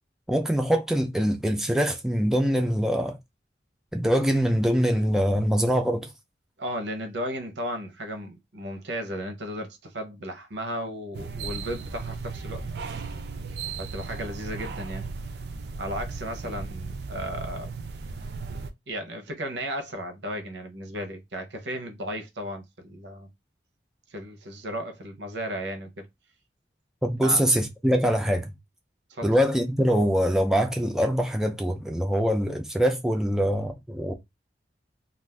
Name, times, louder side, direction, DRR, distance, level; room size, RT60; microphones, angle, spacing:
voice 1, 0.3-3.2 3.9-6.1 27.0-28.5 29.2-34.1, equal, 5° right, 0.3 m, -23 dB
voice 2, 6.6-13.1 13.8-15.1 15.8-17.7 18.9-23.3 24.1-26.1 27.2-27.4 29.1-29.3, equal, 85° right, 0.8 m, -35 dB
sound 1, 11.1-18.7, right 4 dB, 70° right, 0.4 m, -36 dB
2.4 x 2.4 x 3.3 m
head